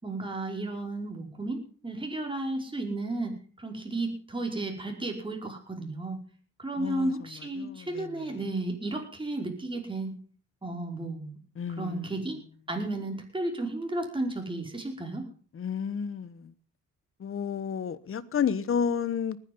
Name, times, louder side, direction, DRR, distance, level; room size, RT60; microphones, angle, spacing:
voice 1, 0.0-6.2 6.6-10.2 10.6-11.4 11.8-12.4 12.7-15.3, right 2 dB, 15° right, 5.2 m, -33 dB
voice 2, 6.8-7.1 7.6-8.4 11.6-12.1 15.5-16.5 17.2-19.4, left 7 dB, 45° left, 1.2 m, -31 dB
19.5 x 10.0 x 5.5 m
cardioid pair, 90°, 30 cm